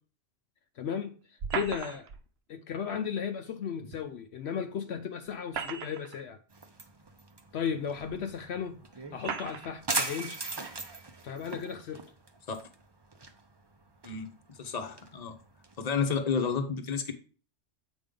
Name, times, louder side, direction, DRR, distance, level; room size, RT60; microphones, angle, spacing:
voice 1, 0.8-2.1 2.5-6.4 7.5-8.7 9.1-10.5 11.2-12.0, left 7 dB, 70° left, 6 dB, 0.9 m, -35 dB
sound 1, 1.4-2.2 3.9-4.0 5.3-6.2 7.1-7.2 8.1-8.2 9.2-9.7, right 6 dB, 65° right, 0.9 m, -36 dB
sound 2, 6.5-16.2, right 3 dB, 25° right, 0.6 m, -40 dB
voice 2, 14.0-15.4 15.8-17.1, left 5 dB, 40° left, 5 dB, 0.9 m, -31 dB
8.1 x 5.2 x 3.7 m, 0.39 s
omnidirectional pair, 1.2 m